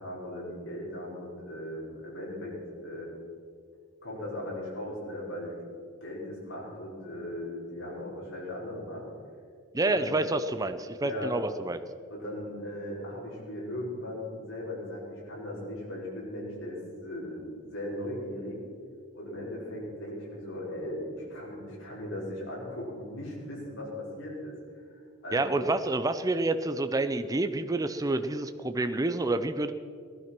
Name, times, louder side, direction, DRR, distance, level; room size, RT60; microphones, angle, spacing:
voice 1, 0.0-2.6 2.8-3.1 4.0-5.6 6.0-9.0 9.8-10.1 11.0-11.3 12.1-18.6 19.1-24.5 25.2-25.6, left 1 dB, 80° left, -5 dB, 5.3 m, -38 dB
voice 2, 9.7-11.8 25.3-29.7, right 2 dB, 15° right, 9 dB, 0.6 m, -28 dB
18.0 x 11.5 x 6.1 m, 2.2 s
head